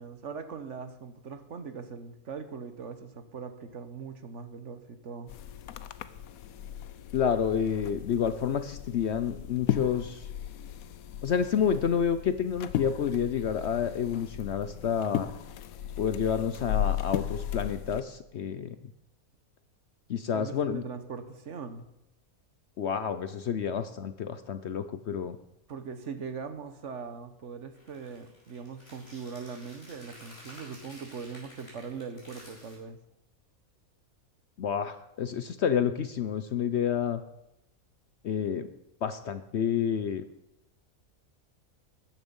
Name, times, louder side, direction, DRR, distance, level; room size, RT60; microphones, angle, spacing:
voice 1, 0.0-5.3 20.3-21.9 25.7-33.0, right 5 dB, 55° right, 10 dB, 1.3 m, -41 dB
sound 1, 5.3-18.0, left 10 dB, 75° left, 1.1 m, -36 dB
voice 2, 7.1-10.2 11.2-15.3 16.0-18.8 20.1-20.8 22.8-25.4 34.6-37.2 38.2-38.7 39.0-40.2, left 7 dB, 60° left, 11 dB, 0.8 m, -29 dB
sound 2, 27.7-32.7, equal, 45° left, 4.9 m, -52 dB
13.5 x 10.5 x 5.4 m, 0.86 s
omnidirectional pair, 1.5 m